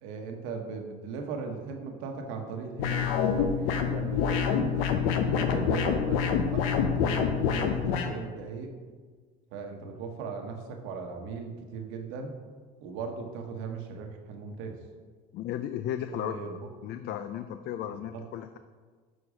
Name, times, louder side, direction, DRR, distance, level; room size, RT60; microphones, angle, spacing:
voice 1, 0.0-4.7 5.3-8.7 9.5-12.3 12.8-14.8 16.1-16.7 17.9-18.2, right 5 dB, 75° right, 3 dB, 1.1 m, -38 dB
sound 1, 2.8-8.1, left 7 dB, 80° left, 0.7 m, -26 dB
voice 2, 15.3-16.4 16.8-18.6, left 11 dB, 55° left, 10 dB, 0.4 m, -35 dB
6.5 x 4.4 x 5.0 m, 1.5 s
supercardioid pair, 90°, 21 cm